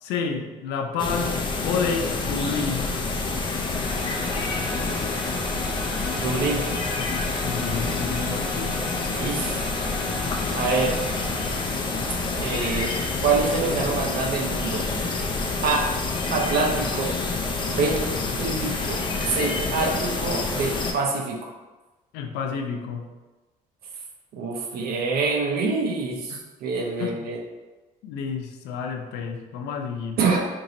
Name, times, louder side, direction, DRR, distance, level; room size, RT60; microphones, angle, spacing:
voice 1, 0.0-1.4 1.6-2.9 7.4-8.9 22.1-23.1 26.3-26.4 27.0-27.2 28.0-30.2, left 5 dB, 90° left, 4 dB, 0.5 m, -29 dB
sound 1, 1.0-20.9, left 3 dB, 30° left, 0.5 m, -27 dB
sound 2, 3.5-14.5, equal, 5° right, 0.9 m, -38 dB
voice 2, 6.1-6.7 9.1-9.6 10.5-11.0 12.4-14.9 15.6-15.9 16.3-17.2 17.6-18.0 18.4-21.5 24.3-27.4 30.2-30.5, right 4 dB, 65° right, 1 dB, 0.7 m, -26 dB
3.0 x 2.7 x 3.9 m, 1.2 s
cardioid pair, 110°, 17 cm